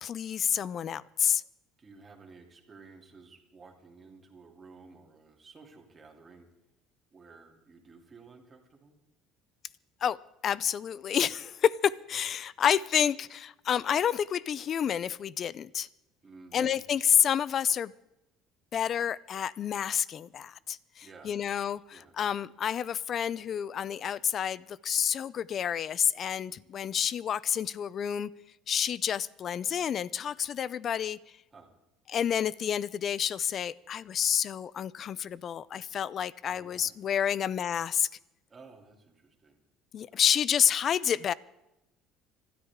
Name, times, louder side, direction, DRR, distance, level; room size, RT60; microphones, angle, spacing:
voice 1, 0.0-1.4 10.0-10.2 10.4-15.9 16.5-17.9 18.7-28.3 28.7-31.2 32.1-38.1 39.9-41.3, left 8 dB, 40° left, 0.5 m, -29 dB
voice 2, 1.8-6.5 7.1-9.0 16.2-16.8 21.0-21.5 21.9-22.2 31.5-31.7 36.4-37.0 37.2-37.3 38.5-39.6 40.1-40.2, right 4 dB, 25° right, 3.0 m, -54 dB
26.5 x 13.0 x 3.7 m
cardioid pair, 135°, 0 cm